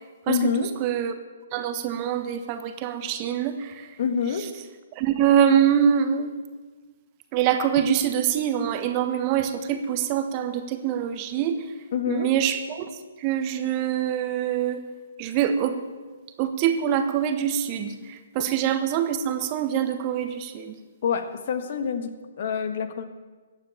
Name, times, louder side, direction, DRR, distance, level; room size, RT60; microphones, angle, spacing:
voice 1, 0.3-0.7 4.0-4.5 11.9-12.3 21.0-23.0, left 7 dB, 55° left, 8 dB, 1.6 m, -26 dB
voice 2, 0.8-1.1 1.5-3.7 5.0-6.3 7.3-11.6 12.1-12.9 13.2-14.8 15.2-15.8 16.4-20.8, right 9 dB, 35° right, 9 dB, 1.3 m, -24 dB
15.0 x 9.1 x 8.9 m, 1.4 s
hypercardioid pair, 135°, 0 cm